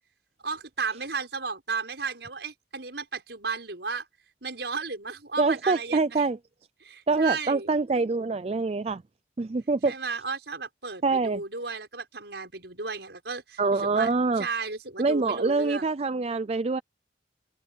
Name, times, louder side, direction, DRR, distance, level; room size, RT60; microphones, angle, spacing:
voice 1, 0.4-4.1 4.4-6.2 6.8-7.7 9.8-14.1 14.4-15.9, right 4 dB, 70° right, 6.2 m, -34 dB
voice 2, 5.4-6.4 7.1-9.0 9.4-9.9 11.0-11.4 13.6-14.5 15.0-16.8, right 3 dB, 35° right, 0.4 m, -25 dB
head